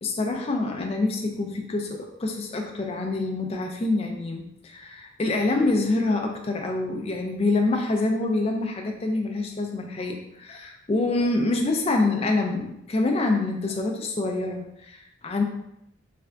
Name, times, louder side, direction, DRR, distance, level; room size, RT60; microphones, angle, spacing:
voice 1, 0.0-15.4, left 2 dB, 30° left, 2 dB, 0.3 m, -26 dB
3.3 x 2.2 x 3.6 m, 0.79 s
head